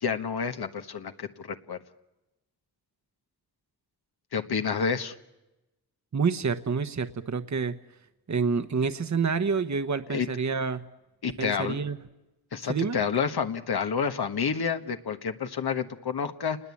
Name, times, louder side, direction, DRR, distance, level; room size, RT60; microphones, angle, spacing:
voice 1, 0.0-1.8 4.3-5.1 10.1-10.3 11.2-11.8 12.5-16.6, left 6 dB, 80° left, 7 dB, 1.4 m, -29 dB
voice 2, 6.1-7.8 8.3-10.8 11.4-12.0 12.7-13.0, right 5 dB, 50° right, 10 dB, 1.1 m, -28 dB
29.0 x 20.5 x 8.5 m, 1.0 s
cardioid pair, 60°, 38 cm